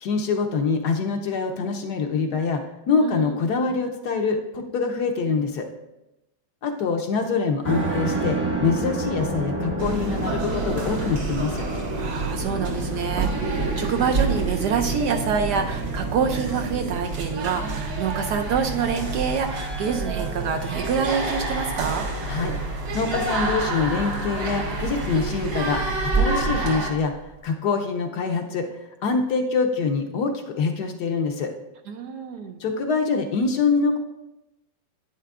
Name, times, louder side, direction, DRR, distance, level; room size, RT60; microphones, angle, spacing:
voice 1, 0.0-5.7 6.6-11.7 22.3-22.5 22.9-27.1 27.4-31.5 32.6-34.0, left 4 dB, 70° left, 4 dB, 1.1 m, -25 dB
voice 2, 3.0-3.3 11.6-22.1 31.9-32.6, right 6 dB, 70° right, 5 dB, 1.0 m, -27 dB
sound 1, 7.6-27.4, right 3 dB, 20° right, 0.3 m, -32 dB
sound 2, 9.8-26.9, right 3 dB, 85° right, 2.4 m, -28 dB
10.0 x 9.3 x 2.4 m, 0.93 s
omnidirectional pair, 2.1 m